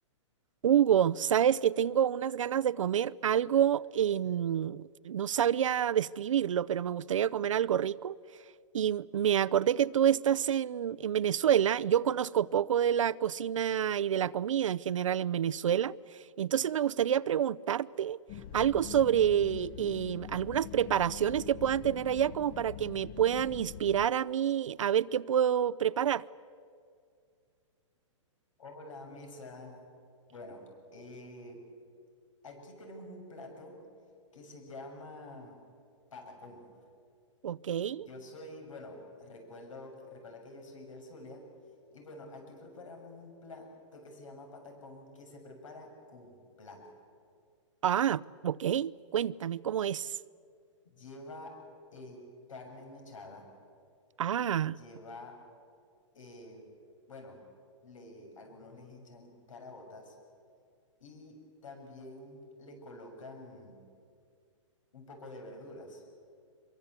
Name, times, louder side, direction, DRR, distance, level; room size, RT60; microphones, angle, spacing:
voice 1, 0.6-8.1 8.7-16.0 16.4-18.2 18.5-26.2 37.4-38.1 47.8-50.2 54.2-54.8, right 9 dB, 85° right, 19 dB, 0.6 m, -28 dB
sound 1, 18.3-24.1, left 9 dB, 30° left, 0.8 m, -44 dB
voice 2, 28.6-29.8 30.3-31.6 32.4-33.8 34.3-35.6 36.1-36.7 38.0-41.4 41.9-46.9 50.9-51.6 51.9-53.5 54.7-55.4 56.1-56.7 57.1-57.4 57.8-60.2 61.0-63.8 64.9-66.0, left 2 dB, 85° left, 4 dB, 7.3 m, -48 dB
25.0 x 23.0 x 8.3 m, 2.3 s
hypercardioid pair, 150°, 16 cm